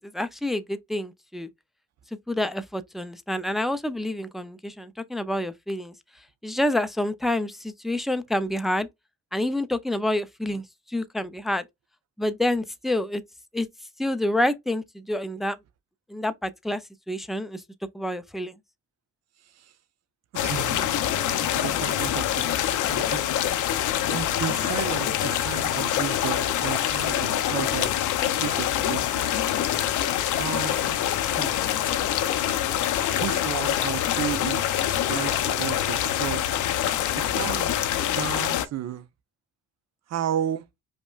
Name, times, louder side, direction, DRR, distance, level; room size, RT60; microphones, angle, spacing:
voice 1, 0.0-1.5 2.3-5.9 6.4-8.9 9.3-11.6 12.2-13.2 13.5-13.7 14.0-15.6 16.1-16.8 17.1-17.6 17.9-18.6, left 1 dB, ahead, 0.4 m, -28 dB
voice 2, 20.3-23.3 24.1-29.3 30.4-31.6 33.2-34.7 35.1-36.5 37.3-37.8 38.2-39.1 40.1-40.6, right 10 dB, 60° right, 0.7 m, -33 dB
sound 1, 20.4-38.7, left 11 dB, 80° left, 0.7 m, -25 dB
5.2 x 2.2 x 2.3 m
cardioid pair, 90°, 30 cm